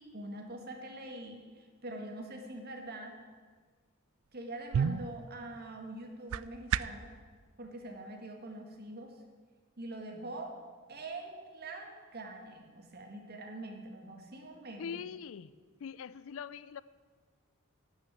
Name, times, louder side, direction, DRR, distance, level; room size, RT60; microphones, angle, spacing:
voice 1, 0.0-3.1 4.3-7.1 7.6-9.1 9.8-10.5 10.9-15.0, right 2 dB, 50° right, 3 dB, 1.8 m, -44 dB
sound 1, 4.2-7.1, right 7 dB, 75° right, 0.3 m, -35 dB
voice 2, 14.8-15.5 15.8-16.8, left 7 dB, 65° left, 18 dB, 0.4 m, -42 dB
12.0 x 6.4 x 9.0 m, 1.5 s
head